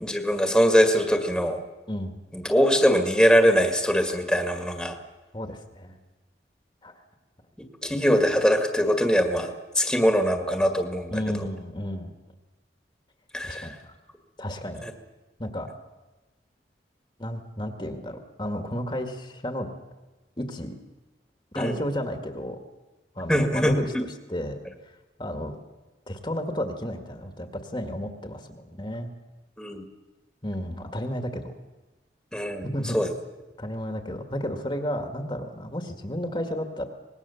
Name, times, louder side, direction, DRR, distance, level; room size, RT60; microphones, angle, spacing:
voice 1, 0.0-1.6 2.3-4.9 7.8-11.1 13.3-13.7 14.8-14.9 21.6-21.8 23.3-23.7 29.6-29.8 32.3-32.7 32.9-33.1, equal, 5° left, 5 dB, 1.9 m, -22 dB
voice 2, 5.3-6.0 6.8-6.9 11.1-12.1 13.4-14.0 14.4-14.9 15.4-15.7 17.2-19.7 20.4-20.8 21.5-22.6 23.2-25.6 26.1-29.1 30.4-31.5 32.6-33.0 33.6-36.9, equal, 25° left, 5 dB, 1.8 m, -32 dB
25.0 x 20.0 x 7.1 m, 1.2 s
head